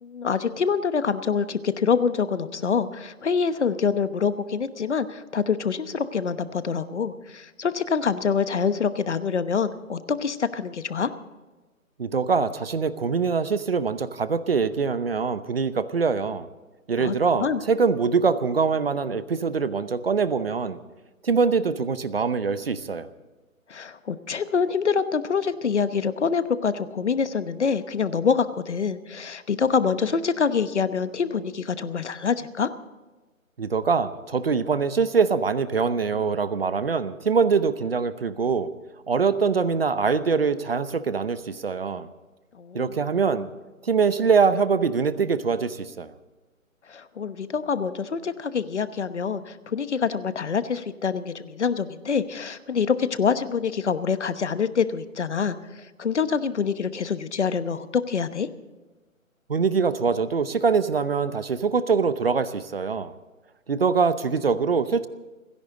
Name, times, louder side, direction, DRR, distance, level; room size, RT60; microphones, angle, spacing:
voice 1, 0.0-11.1 17.0-17.6 23.7-32.7 42.6-43.0 46.9-58.5, left 6 dB, 55° left, 13 dB, 1.1 m, -26 dB
voice 2, 12.0-16.5 16.9-20.8 21.2-23.1 33.6-38.7 39.1-42.1 42.7-43.5 43.8-46.1 59.5-63.1 63.7-65.1, right 5 dB, 45° right, 14 dB, 0.8 m, -23 dB
29.5 x 11.0 x 3.8 m, 1.2 s
hypercardioid pair, 170°, 41 cm